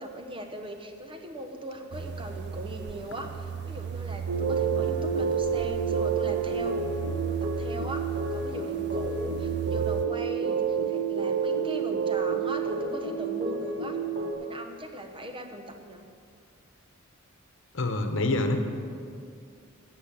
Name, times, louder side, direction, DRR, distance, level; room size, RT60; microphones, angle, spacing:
voice 1, 0.0-6.9 7.2-14.0 14.4-16.1, right 1 dB, 25° right, 4 dB, 1.0 m, -40 dB
sound 1, 1.9-10.1, right 6 dB, 55° right, 0.4 m, -36 dB
sound 2, 4.3-14.3, right 6 dB, 70° right, 1.4 m, -29 dB
voice 2, 17.7-18.6, left 2 dB, 65° left, 6 dB, 1.1 m, -26 dB
15.5 x 6.4 x 7.7 m, 2.3 s
head